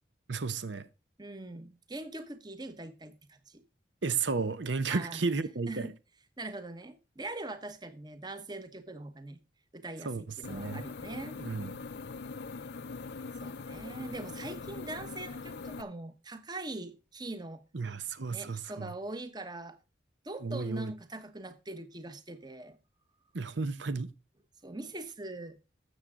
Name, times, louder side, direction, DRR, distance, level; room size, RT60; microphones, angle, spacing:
voice 1, 0.3-0.9 4.0-5.9 10.0-10.8 11.4-11.7 17.7-18.9 20.4-20.9 23.3-24.1, right 4 dB, 70° right, 0.8 m, -33 dB
voice 2, 1.2-3.6 4.9-5.2 5.7-5.9 6.4-9.4 9.7-11.4 13.4-17.6 18.3-19.8 20.2-22.8 24.6-25.6, right 2 dB, 20° right, 1.1 m, -42 dB
sound 1, 10.4-15.8, left 4 dB, 60° left, 0.5 m, -42 dB
13.0 x 7.7 x 3.7 m
head